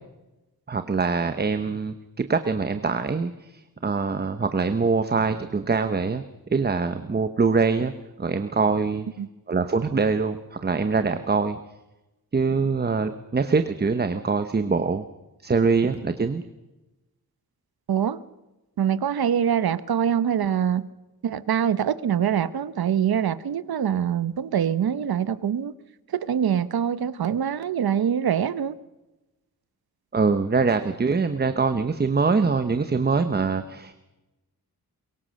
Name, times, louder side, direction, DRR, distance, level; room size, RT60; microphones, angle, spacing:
voice 1, 0.7-6.2 6.5-7.9 8.2-9.1 9.5-11.6 12.3-15.0 15.4-16.4 30.1-33.9, right 4 dB, 25° right, 9 dB, 0.9 m, -24 dB
voice 2, 17.9-18.2 18.8-20.9 21.2-25.7 26.1-28.7, right 8 dB, 80° right, 15 dB, 1.0 m, -24 dB
23.0 x 22.5 x 6.4 m, 1.0 s
wide cardioid pair, 155°, 36 cm